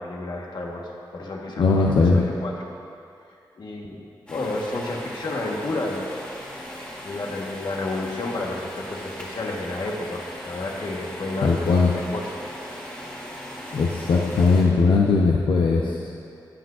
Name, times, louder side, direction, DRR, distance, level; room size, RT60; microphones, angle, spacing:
voice 1, 0.0-2.5 3.6-4.0 4.3-6.2 7.0-12.3, left 2 dB, 65° left, -1 dB, 1.3 m, -31 dB
voice 2, 1.6-2.2 11.4-11.9 13.7-15.9, left 4 dB, 90° left, -3 dB, 0.6 m, -19 dB
sound 1, 4.3-14.6, equal, 15° left, 2.0 m, -38 dB
17.5 x 6.1 x 2.5 m, 2.5 s
wide cardioid pair, 80°, 8 cm